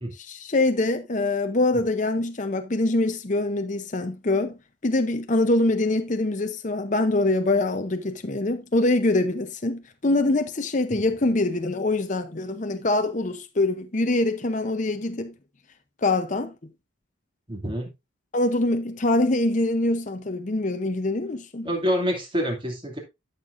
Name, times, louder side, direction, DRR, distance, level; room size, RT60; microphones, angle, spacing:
voice 1, 0.3-4.6 4.8-15.3 16.0-16.5 18.3-21.7, left 2 dB, 35° left, 0.7 m, -24 dB
voice 2, 17.5-17.9 21.6-23.0, equal, 25° right, 2.4 m, -27 dB
12.5 x 6.7 x 2.6 m
head